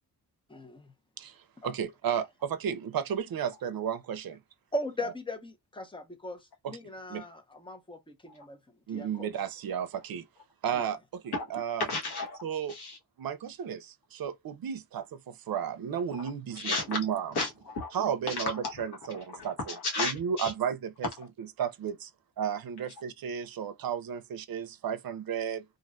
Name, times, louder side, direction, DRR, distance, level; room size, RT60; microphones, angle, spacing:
voice 1, 0.5-0.9 1.6-1.7 4.7-6.4 6.7-8.6 8.9-9.3 10.7-10.9, left 1 dB, 15° left, 0.9 m, -38 dB
voice 2, 1.2-4.4 5.0-5.1 6.6-6.8 7.1-7.2 8.9-10.3 10.6-11.9 12.4-12.8 13.2-17.3 17.9-22.1 22.4-25.6, right 8 dB, 65° right, 0.6 m, -33 dB
voice 3, 11.9-12.4 12.7-13.0 16.2-17.0 17.3-17.9 18.3-18.7 19.1-20.5, left 3 dB, 80° left, 1.4 m, -34 dB
3.1 x 2.5 x 2.5 m
cardioid pair, 75°, 38 cm